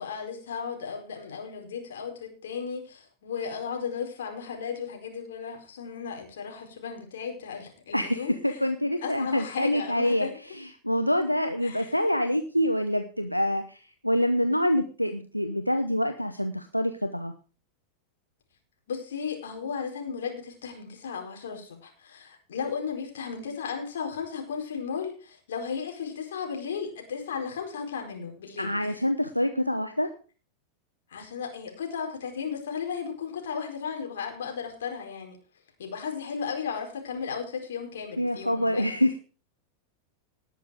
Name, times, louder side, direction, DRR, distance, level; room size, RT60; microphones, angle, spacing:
voice 1, 0.0-8.6 9.0-10.3 11.6-11.9 18.9-29.0 31.1-35.4 35.8-39.0, left 6 dB, 60° left, 2 dB, 4.5 m, -35 dB
voice 2, 7.9-10.3 10.8-17.3 28.6-30.1 38.2-39.2, equal, 90° left, 6 dB, 0.9 m, -26 dB
19.0 x 7.1 x 5.0 m, 0.38 s
figure-of-eight pair, 90°, 0 cm